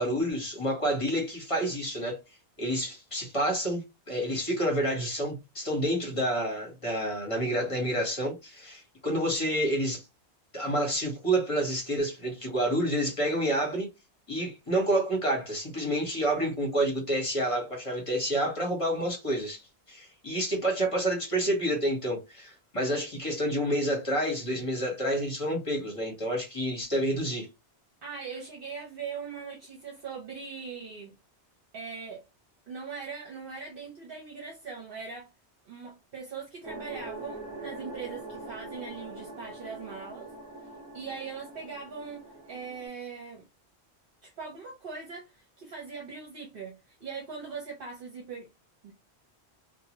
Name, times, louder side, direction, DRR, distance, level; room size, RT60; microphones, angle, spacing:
voice 1, 0.0-2.2 2.6-10.1 10.5-13.9 14.3-27.5, right 1 dB, 30° left, 1.1 m, -29 dB
voice 2, 28.0-31.1 31.7-32.2 32.7-35.3 35.6-40.3 40.9-43.4 44.2-48.5 48.8-48.9, right 5 dB, 60° right, 0.9 m, -40 dB
sound 1, 36.6-42.9, right 2 dB, 20° right, 0.9 m, -43 dB
2.7 x 2.2 x 2.9 m
omnidirectional pair, 1.1 m